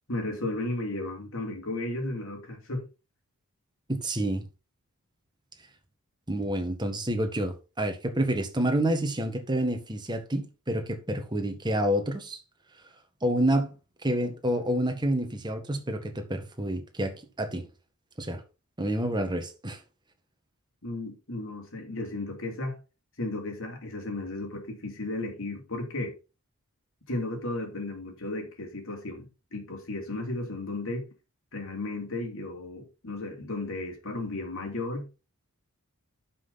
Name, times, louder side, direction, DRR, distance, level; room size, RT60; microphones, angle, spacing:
voice 1, 0.1-2.9 20.8-22.8 23.2-26.1 27.1-31.1 31.5-35.1, left 2 dB, 60° left, 3.3 m, -34 dB
voice 2, 3.9-4.5 6.3-12.4 13.2-13.7 14.0-17.7 18.2-18.4 18.8-19.8, right 1 dB, 20° right, 1.6 m, -28 dB
11.0 x 5.9 x 4.2 m
head